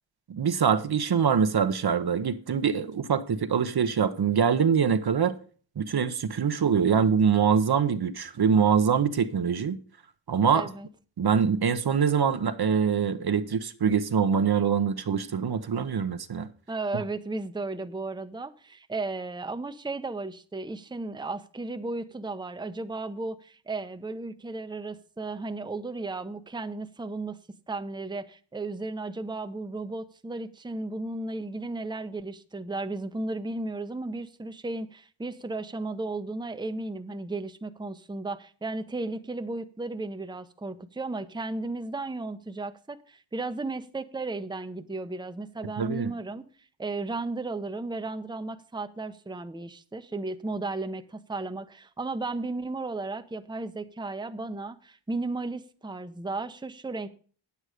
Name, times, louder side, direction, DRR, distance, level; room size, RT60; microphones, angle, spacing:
voice 1, 0.3-5.3 5.8-9.8 10.3-10.7 11.2-16.5 45.8-46.1, right 7 dB, 50° right, 0.9 m, -24 dB
voice 2, 10.5-10.9 16.7-27.4 27.7-46.4 46.8-57.1, right 2 dB, 10° right, 0.8 m, -34 dB
8.9 x 8.3 x 5.0 m
cardioid pair, 55°, 48 cm